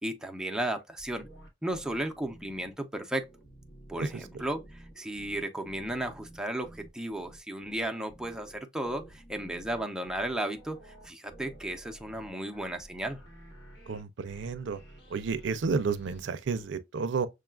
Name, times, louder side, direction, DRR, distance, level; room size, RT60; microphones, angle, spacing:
voice 1, 0.0-1.3 1.6-3.3 3.9-13.2, right 1 dB, 5° right, 0.5 m, -34 dB
sound 1, 1.0-2.7 3.2-16.7, right 1 dB, 75° left, 1.5 m, -52 dB
voice 2, 13.9-14.8 15.1-17.3, right 5 dB, 90° right, 0.4 m, -31 dB
6.4 x 2.3 x 2.3 m
head